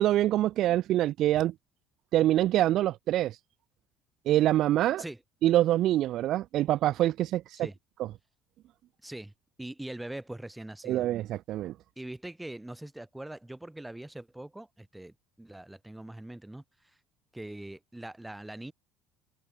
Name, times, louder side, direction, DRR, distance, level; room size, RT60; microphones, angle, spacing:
voice 1, 0.0-1.5 2.1-3.4 4.3-5.0 5.4-7.7 8.0-8.1 10.8-11.7, right 13 dB, 60° right, 0.4 m, -25 dB
voice 2, 9.0-9.3 9.6-11.1 12.0-16.6 17.3-18.7, right 1 dB, 10° right, 3.3 m, -42 dB
supercardioid pair, 85°, 0 cm